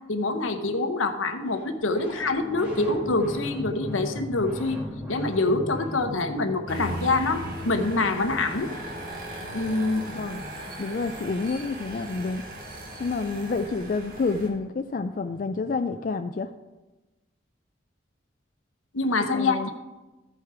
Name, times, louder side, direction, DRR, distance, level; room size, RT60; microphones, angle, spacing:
voice 1, 0.1-4.8 5.1-8.7 9.5-10.0 18.9-19.7, left 3 dB, 85° left, 7 dB, 0.9 m, -25 dB
sound 1, 1.5-11.9 13.9-14.0 14.2-16.0, left 1 dB, 5° right, 2.3 m, -40 dB
sound 2, 6.7-14.5, right 1 dB, 45° right, 1.7 m, -38 dB
voice 2, 10.1-10.4 10.8-12.4 13.0-16.5 19.3-19.7, left 4 dB, 45° left, 7 dB, 0.3 m, -29 dB
14.5 x 4.8 x 4.7 m, 1.1 s
head